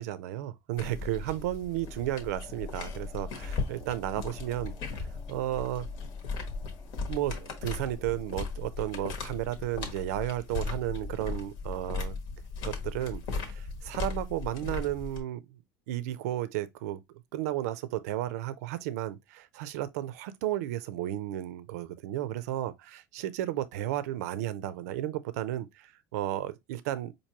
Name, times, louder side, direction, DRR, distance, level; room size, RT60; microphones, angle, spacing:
voice 1, 0.0-5.9 7.1-12.2 12.6-15.4 15.9-17.0 17.3-27.1, right 13 dB, 85° right, 0.4 m, -33 dB
sound 1, 0.8-15.2, left 4 dB, 65° left, 1.2 m, -37 dB
sound 2, 1.6-10.7, left 3 dB, 25° left, 0.7 m, -51 dB
4.5 x 2.6 x 2.8 m
supercardioid pair, 125°, 8 cm